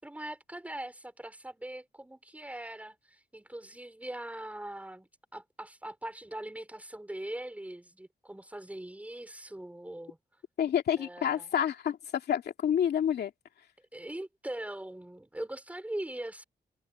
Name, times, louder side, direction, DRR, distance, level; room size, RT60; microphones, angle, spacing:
voice 1, 0.0-10.2 11.0-11.5 13.9-16.4, right 1 dB, 10° right, 4.6 m, -41 dB
voice 2, 10.6-13.3, left 9 dB, 90° left, 2.6 m, -28 dB
wide cardioid pair, 125°, 16 cm